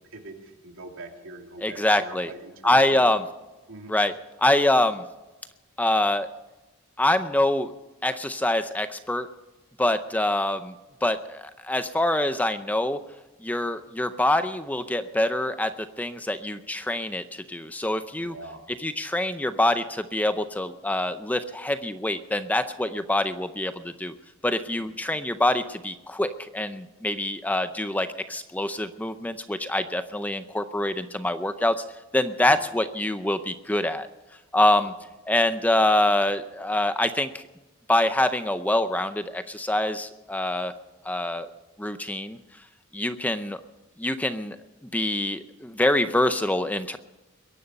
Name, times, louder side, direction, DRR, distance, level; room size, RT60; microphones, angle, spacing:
voice 1, 0.1-3.1 3.7-3.9 18.2-18.6 24.8-24.9 32.4-32.6, right 2 dB, 70° right, 2 dB, 2.8 m, -43 dB
voice 2, 1.6-2.3 2.6-3.3 3.9-5.0 5.8-6.3 7.0-7.7 8.0-9.3 9.8-10.7 11.0-13.0 13.4-18.3 18.8-24.1 24.4-31.8 32.1-34.1 34.5-34.9 35.3-37.4 37.9-40.7 41.0-41.5 41.8-42.4 42.9-43.6 44.0-44.6 44.9-47.0, left 1 dB, 10° left, 10 dB, 0.5 m, -25 dB
22.0 x 11.0 x 5.4 m, 1.1 s
head